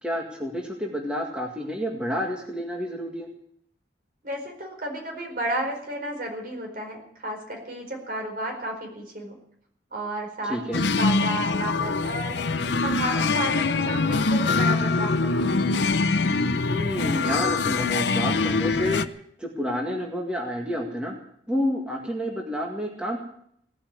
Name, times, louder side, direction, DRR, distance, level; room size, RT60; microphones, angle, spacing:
voice 1, 0.0-3.3 10.4-10.8 16.7-19.1 19.4-21.2 21.5-23.2, equal, 5° right, 0 dB, 1.9 m, -29 dB
voice 2, 4.2-9.3 9.9-12.4 12.8-15.4, right 1 dB, 50° right, 2 dB, 4.8 m, -32 dB
sound 1, 10.7-19.1, left 3 dB, 75° left, 0.7 m, -24 dB
17.5 x 8.6 x 9.6 m, 0.68 s
head